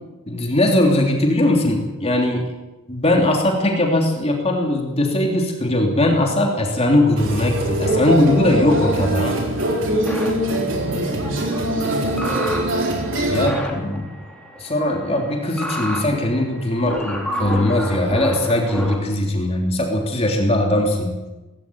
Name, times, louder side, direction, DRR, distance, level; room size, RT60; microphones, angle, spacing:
voice 1, 0.3-2.5 2.9-9.4 13.3-14.1 14.6-21.1, left 1 dB, 30° left, 1 dB, 3.2 m, -19 dB
sound 1, 7.2-13.5, right 1 dB, 60° right, 4.3 m, -22 dB
sound 2, 8.7-9.0 10.1-19.0, equal, 5° left, 3.7 m, -31 dB
voice 2, 10.6-12.5 13.2-13.5, equal, 35° right, 0 dB, 5.0 m, -33 dB
19.0 x 16.0 x 9.3 m, 1.1 s
head